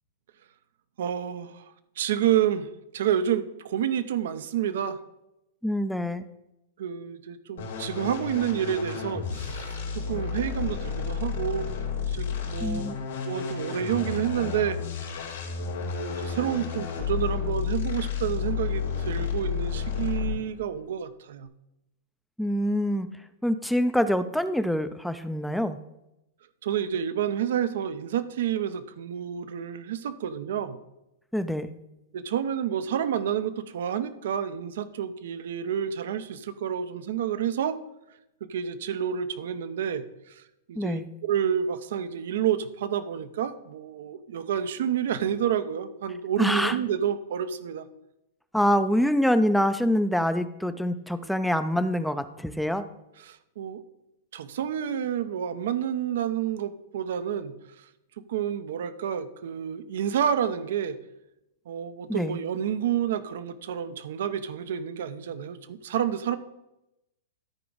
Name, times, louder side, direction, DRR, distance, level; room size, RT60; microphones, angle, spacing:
voice 1, 1.0-1.7 2.0-2.7 2.9-5.0 6.8-11.7 12.1-12.8 13.3-14.8 15.8-21.5 26.6-30.8 32.1-37.8 38.4-40.4 40.7-47.9 53.2-53.8 54.3-57.5 58.3-61.0 61.7-66.4, right 9 dB, 70° right, 12 dB, 0.8 m, -29 dB
voice 2, 5.6-6.2 12.6-12.9 22.4-23.1 23.4-25.8 31.3-31.7 40.8-41.1 46.4-46.8 48.5-52.8 62.1-62.4, equal, ahead, 11 dB, 0.5 m, -25 dB
sound 1, 7.6-20.5, left 7 dB, 85° left, 2.8 m, -31 dB
13.0 x 4.7 x 4.0 m, 0.89 s
hypercardioid pair, 130°, 0 cm